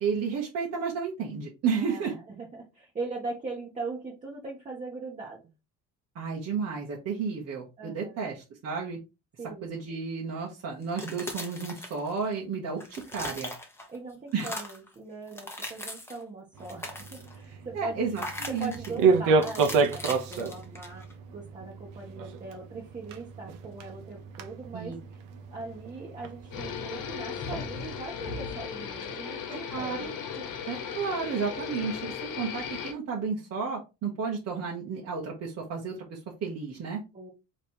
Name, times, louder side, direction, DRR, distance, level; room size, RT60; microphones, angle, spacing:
voice 1, 0.0-2.1 6.1-9.0 9.6-13.5 14.3-14.5 17.4-18.7 24.7-24.9 29.7-30.1 30.7-37.0, right 5 dB, 50° right, -3 dB, 1.2 m, -32 dB
voice 2, 1.7-5.4 7.8-8.3 9.4-9.7 13.9-18.2 18.5-21.0 21.3-25.0 25.5-30.1 30.4-30.5 37.1-37.3, right 3 dB, 25° right, -4 dB, 1.2 m, -40 dB
sound 1, 10.8-12.4 12.7-14.0 14.3-14.9 15.3-16.2 16.6-17.4 18.1-19.0 19.4-21.1, left 1 dB, 5° left, 0.9 m, -40 dB
sound 2, 16.5-28.0, right 4 dB, 75° right, 0.9 m, -30 dB
sound 3, 26.5-32.9, left 7 dB, 70° left, 1.1 m, -36 dB
3.4 x 3.2 x 4.4 m, 0.27 s
cardioid pair, 140°, 32 cm